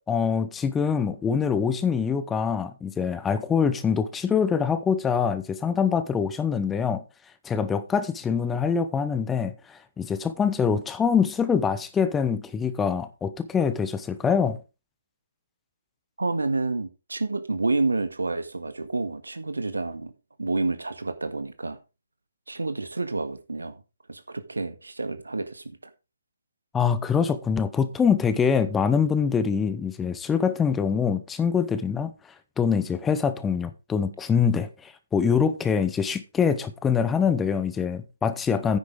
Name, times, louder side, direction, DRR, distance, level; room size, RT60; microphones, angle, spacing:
voice 1, 0.1-7.0 7.4-14.6 26.7-32.1 32.6-38.8, left 6 dB, 10° left, 0.8 m, -24 dB
voice 2, 16.2-20.1 20.4-21.8 22.5-23.8 24.1-25.9, right 3 dB, 75° right, 1.7 m, -29 dB
9.6 x 9.5 x 3.6 m
figure-of-eight pair, 135°, 0 cm